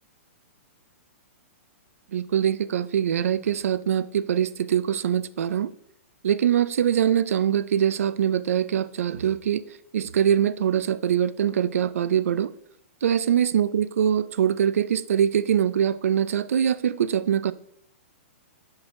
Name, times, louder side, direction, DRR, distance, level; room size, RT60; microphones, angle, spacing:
voice 1, 2.1-5.7 6.2-9.6 9.9-12.5 13.0-17.5, right 9 dB, 85° right, 0.4 m, -23 dB
5.8 x 5.5 x 4.2 m
hypercardioid pair, 165°, 7 cm